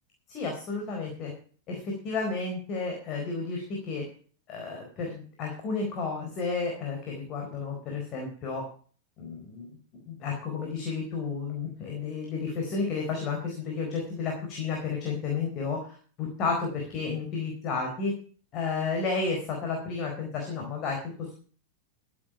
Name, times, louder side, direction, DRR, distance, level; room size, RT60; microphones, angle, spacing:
voice 1, 0.3-1.3 1.7-4.0 4.5-8.6 9.2-15.8 16.2-18.1 18.5-21.3, left 4 dB, 35° left, 1 dB, 4.3 m, -32 dB
14.0 x 8.9 x 5.8 m, 0.43 s
figure-of-eight pair, 90°, 0 cm